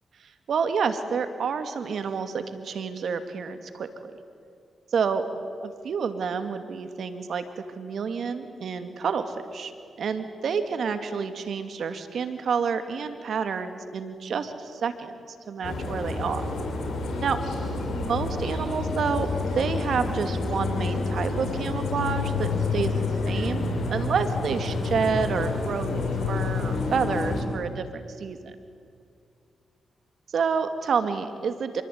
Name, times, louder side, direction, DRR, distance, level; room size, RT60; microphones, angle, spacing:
voice 1, 0.5-4.1 4.9-5.3 5.6-9.7 10.0-16.4 17.2-17.4 17.9-19.3 19.5-28.5 30.3-31.8, right 6 dB, 70° right, 9 dB, 2.4 m, -29 dB
sound 1, 15.6-27.4, left 3 dB, 70° left, 5.9 m, -28 dB
26.0 x 23.0 x 9.5 m, 2.3 s
supercardioid pair, 45°, 0 cm